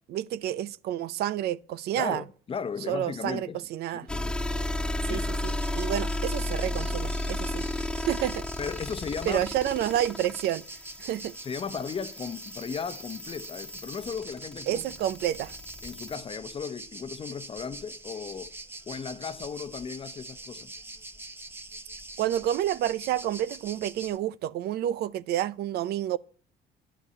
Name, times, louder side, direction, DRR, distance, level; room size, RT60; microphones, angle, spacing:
voice 1, 0.1-2.2 2.9-4.1 5.1-7.6 8.0-8.4 9.3-10.6 11.0-11.3 14.7-15.6 22.2-26.2, right 12 dB, 70° right, 0.6 m, -29 dB
voice 2, 1.9-3.7 4.1-4.5 5.0-5.3 8.6-9.4 11.4-14.8 15.8-18.6 18.9-20.7, left 6 dB, 35° left, 0.9 m, -36 dB
sound 1, 4.1-16.1, left 1 dB, 5° left, 0.5 m, -34 dB
sound 2, 5.4-24.2, right 2 dB, 15° right, 1.1 m, -44 dB
11.0 x 8.3 x 8.3 m
cardioid pair, 110°, 17 cm